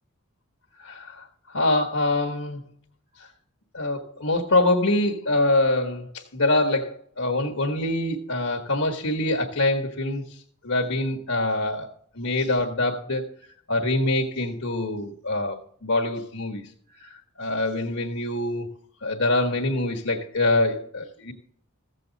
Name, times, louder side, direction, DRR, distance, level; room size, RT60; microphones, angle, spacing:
voice 1, 0.8-2.6 3.2-3.3 3.7-10.2 10.6-11.9 12.1-13.3 13.7-16.6 17.0-18.7 19.0-21.3, left 2 dB, 70° left, 1.4 m, -25 dB
15.0 x 7.7 x 4.0 m
head